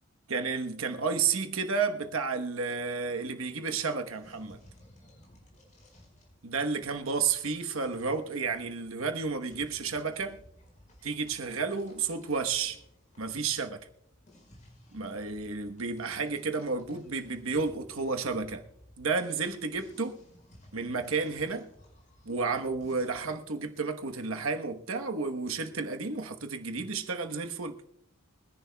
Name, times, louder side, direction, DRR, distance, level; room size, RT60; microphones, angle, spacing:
voice 1, 0.3-4.6 6.4-10.4 11.0-12.8 13.2-13.9 14.9-18.6 19.0-20.2 20.7-21.7 22.2-27.8, right 4 dB, 80° right, 1.1 m, -31 dB
sound 1, 4.2-23.4, left 1 dB, 35° left, 4.7 m, -58 dB
23.5 x 10.5 x 2.3 m
head